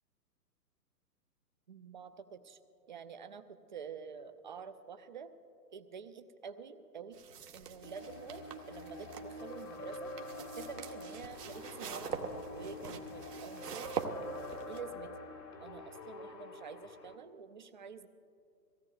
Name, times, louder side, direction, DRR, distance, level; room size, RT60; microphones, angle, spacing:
voice 1, 1.7-2.6 2.9-5.3 5.7-7.2 7.5-10.1 10.5-14.3 14.7-15.1 15.6-18.1, right 6 dB, 35° right, 11 dB, 0.4 m, -48 dB
sound 1, 7.1-14.8, right 6 dB, 75° right, 1.3 m, -44 dB
sound 2, 7.8-17.2, left 2 dB, 80° left, 1.5 m, -46 dB
23.5 x 16.5 x 2.3 m, 2.5 s
hypercardioid pair, 130°, 49 cm